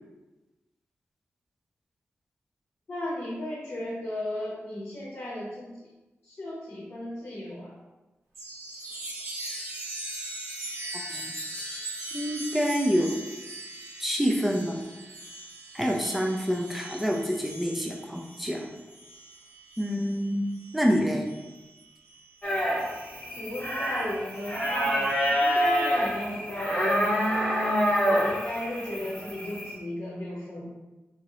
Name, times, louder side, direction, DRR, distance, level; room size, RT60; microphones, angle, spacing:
voice 1, 2.9-5.9 6.2-7.7 23.3-27.4 28.0-30.7, left 1 dB, 50° left, -5 dB, 0.9 m, -35 dB
Chime, 8.3-22.3 22.8-25.6, right 2 dB, 75° right, 1.1 m, -41 dB
voice 2, 12.1-13.2 14.0-14.8 15.7-18.7 19.8-20.5 20.7-21.4, equal, 5° right, 1 dB, 0.5 m, -27 dB
sound 1, 22.4-29.7, equal, 25° left, 1.0 m, -27 dB
3.6 x 3.0 x 2.9 m, 1.1 s
wide cardioid pair, 130°, 5 cm